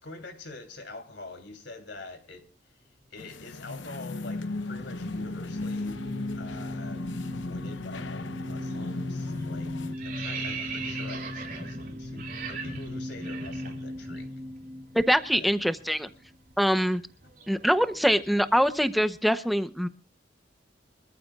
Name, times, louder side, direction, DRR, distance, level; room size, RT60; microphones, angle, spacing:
voice 1, 0.0-2.8 3.1-6.0 6.3-9.7 10.1-14.3 15.3-15.5 16.7-16.9, left 2 dB, 70° left, 6 dB, 3.3 m, -45 dB
sound 1, 3.2-10.0, left 2 dB, 85° left, 0.9 m, -36 dB
sound 2, 3.6-16.1, left 1 dB, 25° right, 1.2 m, -38 dB
sound 3, 8.7-9.0 9.3-14.2 14.5-14.7 15.0-19.1, right 5 dB, 50° right, 2.7 m, -40 dB
voice 2, 14.9-16.1 16.6-17.0 17.5-19.9, equal, ahead, 11 dB, 0.8 m, -24 dB
25.0 x 14.0 x 2.4 m, 0.34 s
head